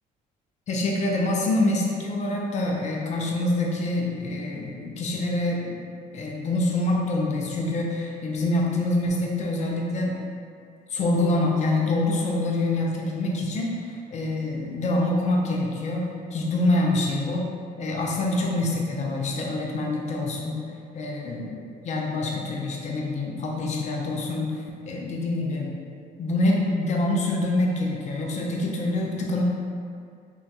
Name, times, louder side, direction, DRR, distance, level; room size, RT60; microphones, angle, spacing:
voice 1, 0.7-10.2 10.9-17.5 17.8-20.6 20.9-24.5 24.8-25.7 26.2-29.4, left 2 dB, 45° left, -1 dB, 0.5 m, -26 dB
2.8 x 2.3 x 2.4 m, 2.3 s
cardioid pair, 110°, 17 cm